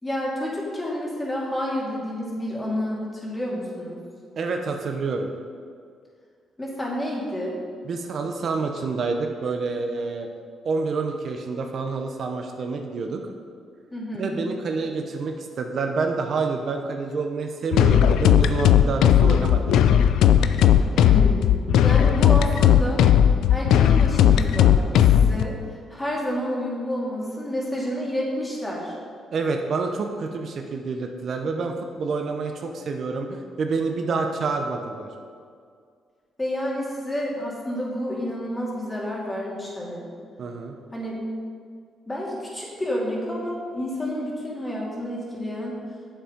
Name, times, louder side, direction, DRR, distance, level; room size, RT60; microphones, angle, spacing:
voice 1, 0.0-4.0 6.6-7.6 13.9-14.3 21.0-23.0 23.5-25.6 25.9-28.9 36.4-40.1 40.9-41.2 42.0-45.8, equal, 20° left, -4 dB, 2.5 m, -29 dB
voice 2, 4.4-5.3 7.9-10.3 10.6-13.2 14.1-20.0 29.3-35.1 40.4-40.7, right 4 dB, 55° right, 4 dB, 0.8 m, -28 dB
sound 1, 17.7-25.4, left 9 dB, 80° left, 0.4 m, -17 dB
7.8 x 7.3 x 5.1 m, 2.2 s
cardioid pair, 90°, 0 cm